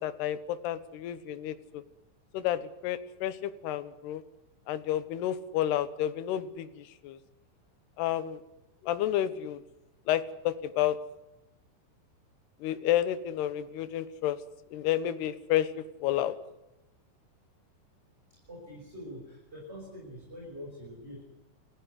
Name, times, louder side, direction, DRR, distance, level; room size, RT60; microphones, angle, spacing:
voice 1, 0.0-1.8 2.3-4.2 4.7-6.7 7.0-7.2 8.0-8.4 8.8-9.6 10.1-11.0 12.6-14.4 14.7-15.7 16.0-16.3, left 12 dB, 75° left, 13 dB, 3.2 m, -30 dB
voice 2, 18.5-21.2, equal, 15° right, -1 dB, 6.4 m, -44 dB
29.5 x 15.0 x 9.7 m, 0.96 s
omnidirectional pair, 4.9 m